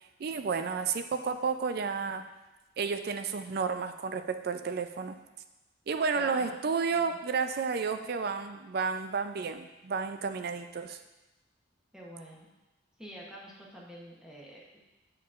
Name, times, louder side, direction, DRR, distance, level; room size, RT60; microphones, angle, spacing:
voice 1, 0.2-2.2 2.8-5.2 5.9-11.0, right 5 dB, 50° right, 8 dB, 0.4 m, -31 dB
voice 2, 6.1-6.6 6.9-7.2 7.9-8.1 11.9-12.5 13.0-14.8, equal, 5° right, -4 dB, 0.9 m, -47 dB
8.4 x 4.5 x 2.5 m, 1.0 s
head